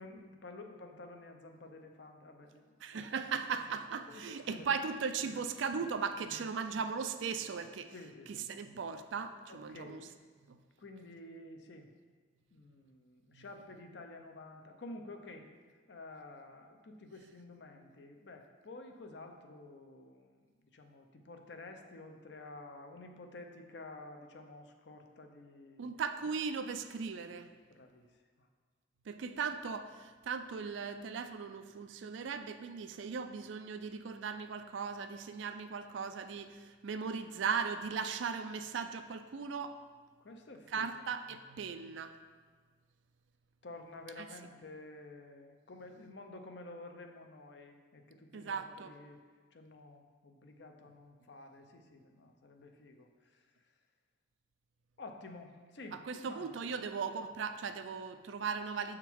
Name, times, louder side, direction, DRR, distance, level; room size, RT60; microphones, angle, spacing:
voice 1, 0.0-2.6 2.9-3.2 4.1-4.7 5.2-5.3 6.3-6.4 7.4-7.5 7.9-8.5 9.5-10.1 10.8-11.9 12.5-15.5 15.9-25.9 27.7-28.1 28.4-28.5 40.2-41.0 43.6-49.2 49.5-53.4 55.0-56.5, left 2 dB, 60° left, 5 dB, 0.6 m, -51 dB
voice 2, 2.8-7.9 8.3-10.1 10.5-10.6 13.3-13.4 25.8-27.5 29.1-39.8 40.7-42.2 44.2-44.3 48.3-48.9 55.9-59.0, right 5 dB, 70° right, 9 dB, 0.4 m, -38 dB
6.9 x 3.7 x 4.6 m, 1.5 s
head